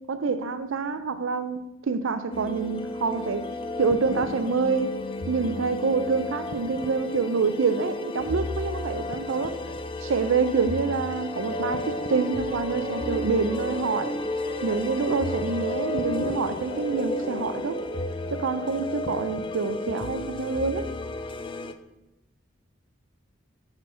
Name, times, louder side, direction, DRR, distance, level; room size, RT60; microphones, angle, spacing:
voice 1, 0.1-3.5 3.8-5.0 5.3-9.5 10.0-14.2 14.6-17.8 18.3-20.9, right 4 dB, 85° right, 0.5 m, -26 dB
sound 1, 2.3-21.7, left 2 dB, 25° left, 0.3 m, -34 dB
sound 2, 11.5-18.4, equal, 55° left, 1.5 m, -34 dB
5.7 x 4.6 x 5.0 m
head